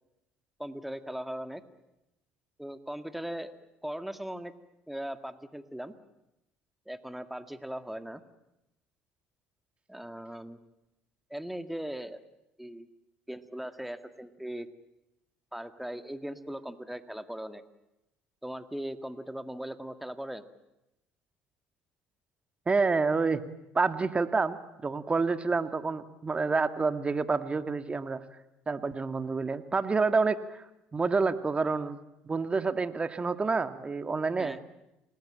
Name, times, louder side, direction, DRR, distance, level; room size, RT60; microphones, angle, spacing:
voice 1, 0.6-1.6 2.6-3.5 3.8-4.5 4.9-5.9 6.9-8.2 9.9-10.6 11.3-12.2 12.6-12.9 13.3-14.7 15.5-17.6 18.4-20.4 34.4-34.6, right 1 dB, 5° right, 9 dB, 1.9 m, -39 dB
voice 2, 22.7-23.4 23.7-24.6 24.8-28.2 28.7-30.6 30.9-32.0 32.3-34.6, right 4 dB, 25° right, 10 dB, 1.8 m, -28 dB
28.0 x 19.5 x 8.9 m, 0.92 s
hypercardioid pair, 65°, 4 cm